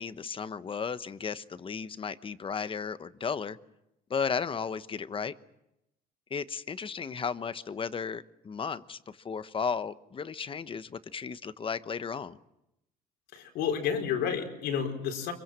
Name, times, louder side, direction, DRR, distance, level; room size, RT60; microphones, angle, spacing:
voice 1, 0.0-3.6 4.1-5.3 6.3-12.4, left 6 dB, 30° left, 13 dB, 1.0 m, -34 dB
voice 2, 13.3-15.3, left 7 dB, 85° left, 4 dB, 4.6 m, -30 dB
25.5 x 23.0 x 7.5 m, 0.89 s
cardioid pair, 110°, 17 cm